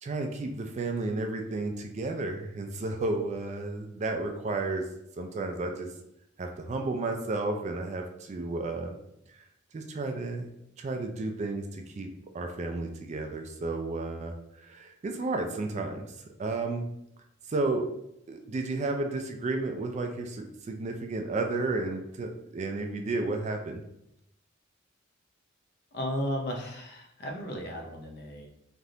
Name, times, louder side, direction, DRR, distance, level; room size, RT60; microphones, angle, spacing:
voice 1, 0.0-5.9 6.4-9.0 9.3-9.4 9.7-10.5 10.8-12.1 12.3-16.9 17.5-17.9 18.3-23.8, right 2 dB, 35° right, 4 dB, 0.3 m, -32 dB
voice 2, 25.9-28.5, equal, 50° left, 2 dB, 0.6 m, -34 dB
3.3 x 2.5 x 2.7 m, 0.80 s
head